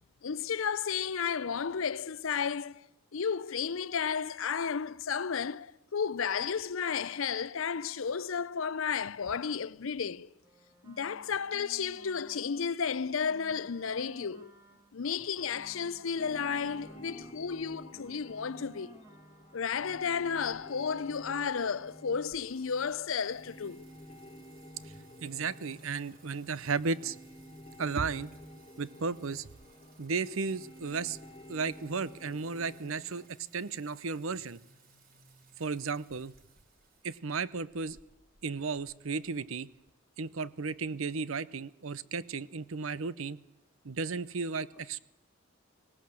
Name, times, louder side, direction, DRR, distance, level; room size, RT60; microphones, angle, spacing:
voice 1, 0.2-2.9 3.1-10.3 10.8-14.5 14.9-19.0 19.5-23.9, left 6 dB, 75° left, 0.6 m, -33 dB
sound 1, 10.4-12.7 13.0-17.4 17.6-19.7, right 1 dB, 15° right, 1.7 m, -56 dB
sound 2, 15.4-33.3, equal, 25° left, 1.5 m, -52 dB
Singing, 22.3-39.9, right 3 dB, 45° right, 3.3 m, -62 dB
voice 2, 25.2-27.2 27.8-28.3 28.8-29.5 30.0-31.2 31.5-34.6 35.6-36.3 37.0-38.0 38.4-39.7 40.2-43.4 43.8-45.0, right 4 dB, 75° right, 0.8 m, -34 dB
19.5 x 18.0 x 7.6 m
head